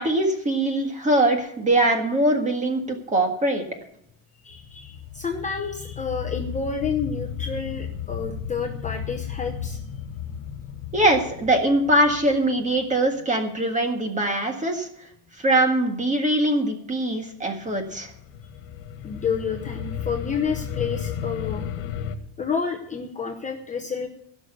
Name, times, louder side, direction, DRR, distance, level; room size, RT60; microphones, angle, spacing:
voice 1, 0.0-3.6 10.9-14.9 15.4-18.1, right 1 dB, 15° right, 4 dB, 1.7 m, -22 dB
voice 2, 4.4-9.8 19.0-21.6 22.4-24.1, left 5 dB, 15° left, 2 dB, 0.9 m, -29 dB
sound 1, 4.5-13.3 17.7-22.2, left 8 dB, 80° left, 1.6 m, -34 dB
16.5 x 6.3 x 7.9 m, 0.71 s
cardioid pair, 170°, 45 cm